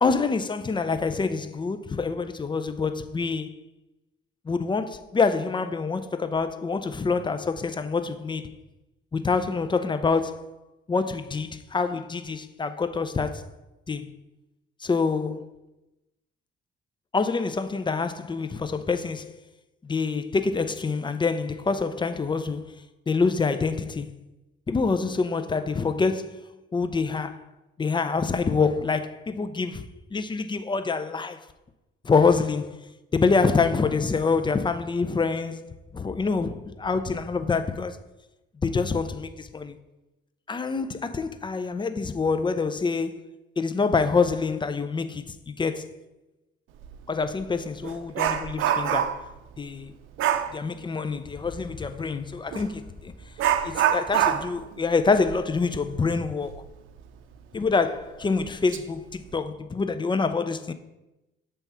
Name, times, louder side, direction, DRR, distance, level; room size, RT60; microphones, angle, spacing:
voice 1, 0.0-3.5 4.5-8.6 9.1-10.5 10.9-13.5 13.9-14.1 14.8-15.4 17.1-19.3 19.8-22.8 23.1-24.1 24.7-27.4 27.8-31.4 32.0-32.8 33.1-38.0 38.6-39.8 40.5-43.2 43.6-45.9 47.1-49.2 49.6-49.9 50.5-53.1 53.6-56.6 57.5-60.7, left 4 dB, 25° left, 0.5 m, -26 dB
Dog, 46.8-47.0 47.4-49.3 50.2-50.5 52.5-52.7 53.4-56.7 57.0-57.1 57.6-57.7 58.4-58.8 59.1-59.4, right 10 dB, 80° right, 0.5 m, -26 dB
7.3 x 3.4 x 5.5 m
cardioid pair, 90°, 20 cm